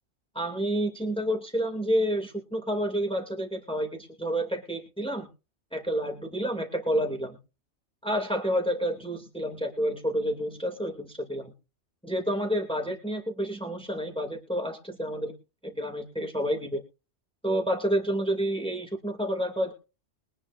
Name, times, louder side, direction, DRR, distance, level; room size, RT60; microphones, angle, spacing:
voice 1, 0.3-5.3 5.7-7.4 8.0-11.5 12.0-15.3 15.6-16.8 17.4-19.7, equal, 5° left, 4 dB, 2.4 m, -29 dB
22.5 x 10.5 x 2.5 m, 0.31 s
omnidirectional pair, 1.2 m